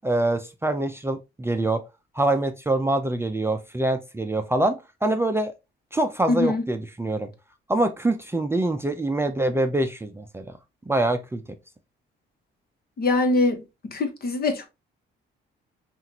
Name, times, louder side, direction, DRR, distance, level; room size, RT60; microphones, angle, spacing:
voice 1, 0.0-1.8 2.1-5.5 5.9-7.3 7.7-10.6 10.9-11.4, right 2 dB, 10° right, 0.5 m, -25 dB
voice 2, 6.3-6.6 13.0-13.6 13.9-14.7, left 2 dB, 50° left, 1.2 m, -23 dB
5.6 x 2.5 x 2.8 m
cardioid pair, 90°, 20 cm